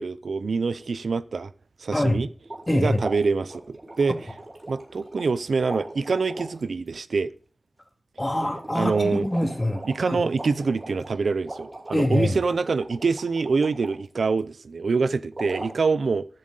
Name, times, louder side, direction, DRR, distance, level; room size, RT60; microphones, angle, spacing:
voice 1, 0.0-1.5 1.8-2.3 2.7-4.3 4.7-7.3 8.7-9.3 9.8-16.3, right 4 dB, 85° right, 0.5 m, -25 dB
sound 1, 2.4-2.7 3.0-5.4 5.6-6.6 8.4-13.9 15.3-15.7, right 2 dB, 35° right, 6.1 m, -39 dB
voice 2, 2.7-3.0 8.2-9.8 10.1-10.2 11.9-12.4, left 1 dB, 25° left, 2.2 m, -24 dB
14.0 x 7.4 x 3.9 m
cardioid pair, 50°, 0 cm